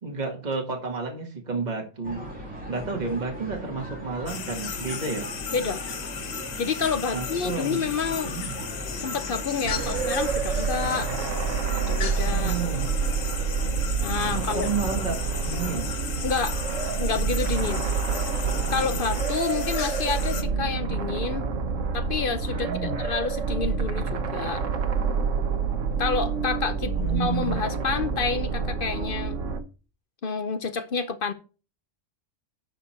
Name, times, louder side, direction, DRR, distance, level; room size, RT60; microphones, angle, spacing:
voice 1, 0.0-2.2 2.7-5.3 7.1-7.8 8.2-8.5 12.3-12.9 14.4-15.2 15.4-15.9 22.5-23.0 26.9-27.6, right 4 dB, 35° right, 1.9 m, -31 dB
sound 1, 2.0-10.3, equal, 5° right, 3.2 m, -38 dB
sound 2, 4.3-20.4, left 7 dB, 85° left, 1.4 m, -36 dB
voice 2, 5.5-5.8 6.6-8.3 9.0-11.1 11.8-12.6 14.0-14.7 16.2-16.6 17.0-17.8 18.7-21.5 21.9-24.6 26.0-29.4 30.2-31.3, left 5 dB, 50° left, 0.8 m, -29 dB
sound 3, 9.6-29.6, right 5 dB, 75° right, 1.4 m, -28 dB
11.0 x 5.1 x 4.3 m
omnidirectional pair, 1.3 m